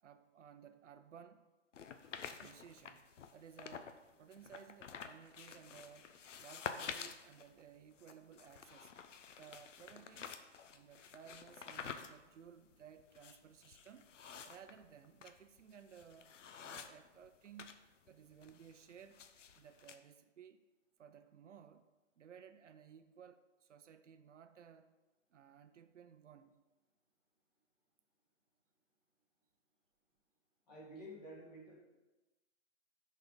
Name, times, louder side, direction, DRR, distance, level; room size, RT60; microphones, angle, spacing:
voice 1, 0.0-1.5 2.4-8.9 9.4-10.4 10.7-14.1 14.4-16.3 16.6-17.7 18.1-19.2 19.5-20.6 21.0-21.9 22.2-24.9 25.3-26.6, right 8 dB, 70° right, 10 dB, 0.6 m, -58 dB
sound 1, 1.7-4.0 4.3-17.8 18.1-20.0, left 7 dB, 75° left, 0.7 m, -50 dB
voice 2, 30.7-31.8, equal, 35° left, -4 dB, 2.1 m, -51 dB
6.3 x 4.2 x 5.2 m, 1.1 s
hypercardioid pair, 165°, 38 cm